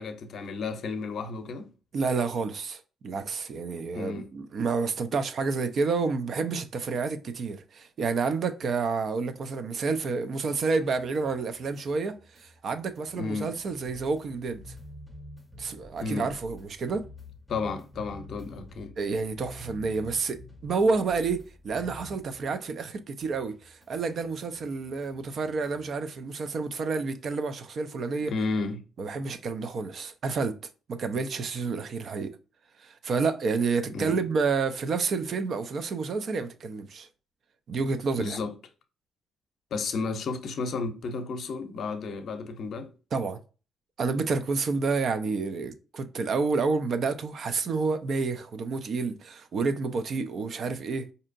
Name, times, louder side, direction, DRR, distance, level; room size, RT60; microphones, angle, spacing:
voice 1, 0.0-1.7 3.9-4.3 13.2-13.5 16.0-16.3 17.5-18.9 28.3-28.8 33.9-34.2 38.2-38.5 39.7-42.9, left 4 dB, 60° left, 0.6 m, -32 dB
voice 2, 1.9-14.6 15.6-17.1 19.0-28.3 29.0-30.6 30.9-32.3 32.8-37.1 37.7-38.4 43.1-43.4 44.0-51.1, right 4 dB, 55° right, 0.4 m, -29 dB
sound 1, 10.6-22.9 23.2-26.0, left 1 dB, ahead, 0.7 m, -49 dB
4.3 x 2.7 x 2.5 m
cardioid pair, 90°, 0 cm